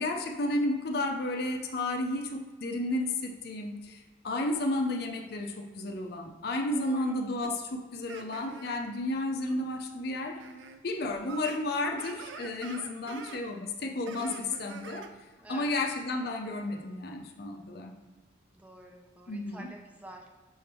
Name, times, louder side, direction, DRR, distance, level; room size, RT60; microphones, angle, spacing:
voice 1, 0.0-10.4 10.8-15.1 15.5-18.0 19.3-19.7, left 2 dB, 55° left, 3 dB, 0.6 m, -32 dB
voice 2, 6.7-7.1 15.4-15.8 18.5-20.3, right 1 dB, 10° right, 1 dB, 0.6 m, -48 dB
sound 1, 7.4-7.5 8.1-8.7 9.5-9.6 10.4-10.8 11.0-13.4 14.1-15.1, right 5 dB, 75° right, 0.5 m, -46 dB
6.2 x 3.4 x 4.5 m, 1.3 s
head